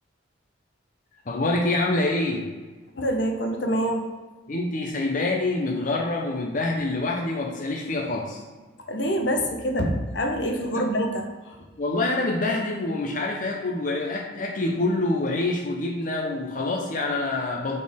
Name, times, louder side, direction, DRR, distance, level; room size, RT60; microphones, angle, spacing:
voice 1, 1.3-2.5 4.5-8.4 10.7-10.9 11.8-17.8, left 2 dB, 40° left, -1 dB, 0.7 m, -26 dB
voice 2, 2.9-4.1 8.9-11.6, equal, 70° left, 3 dB, 0.9 m, -26 dB
6.7 x 4.2 x 3.6 m, 1.3 s
head